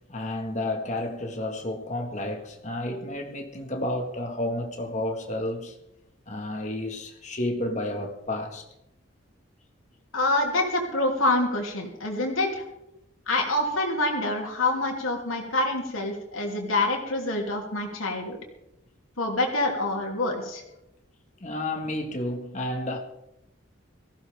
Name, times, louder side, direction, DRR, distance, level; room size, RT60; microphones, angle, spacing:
voice 1, 0.1-5.8 6.3-8.6 21.4-23.0, left 1 dB, 35° left, 1.8 m, -31 dB
voice 2, 10.1-12.6 13.3-18.4 19.2-20.6, left 2 dB, 85° left, 3.0 m, -26 dB
18.0 x 15.5 x 3.6 m
head